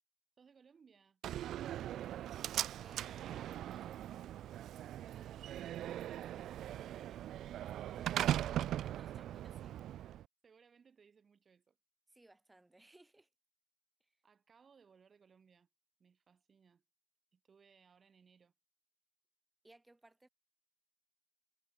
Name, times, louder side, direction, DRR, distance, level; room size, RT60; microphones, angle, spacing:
voice 1, 0.4-2.1 5.1-7.6 10.4-11.8 14.2-15.7 16.0-16.8 17.3-18.5, right 6 dB, 45° right, 6.5 m, -66 dB
Slam, 1.2-10.2, right 12 dB, 70° right, 0.3 m, -40 dB
voice 2, 2.8-4.1 8.8-9.8 12.1-13.3 14.0-14.1 19.6-20.3, right 2 dB, 15° right, 2.4 m, -63 dB
supercardioid pair, 60°, 0 cm